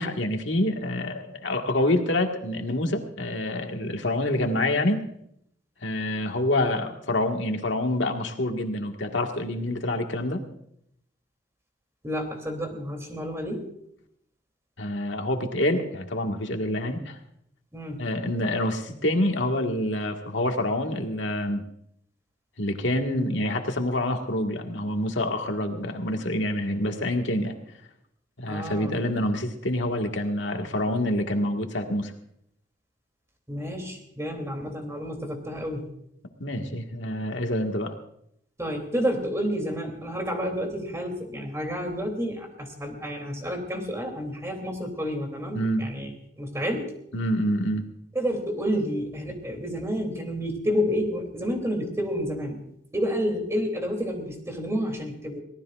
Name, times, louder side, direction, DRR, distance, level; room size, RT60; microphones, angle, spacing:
voice 1, 0.0-5.0 5.8-10.4 14.8-17.2 18.0-21.6 22.6-27.5 28.4-32.1 36.4-37.9 45.5-45.9 47.1-47.8, left 1 dB, 90° left, 3 dB, 1.8 m, -27 dB
voice 2, 12.0-13.6 17.7-18.0 28.5-29.0 33.5-35.9 38.6-46.1 46.4-46.9 48.1-52.6 52.9-55.4, equal, 15° right, 3 dB, 3.1 m, -30 dB
24.0 x 18.0 x 2.5 m, 0.72 s
head